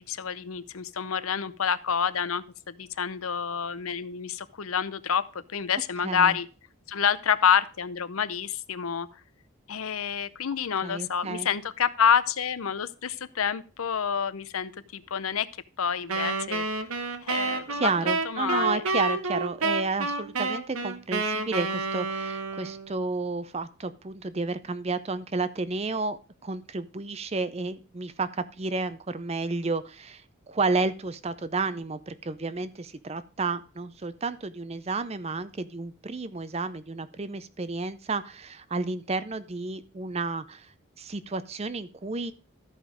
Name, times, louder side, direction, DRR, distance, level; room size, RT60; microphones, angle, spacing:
voice 1, 0.0-6.5 6.9-9.1 9.7-15.5 15.8-16.6 17.2-17.9 18.2-18.8, left 7 dB, 75° left, 15 dB, 0.7 m, -28 dB
voice 2, 6.0-6.4 10.8-11.5 17.7-40.7 41.0-42.3, right 3 dB, 30° right, 13 dB, 0.5 m, -31 dB
Wind instrument woodwind instrument, 16.1-22.9, right 3 dB, 80° right, 1.1 m, -29 dB
13.5 x 5.1 x 5.0 m, 0.35 s
head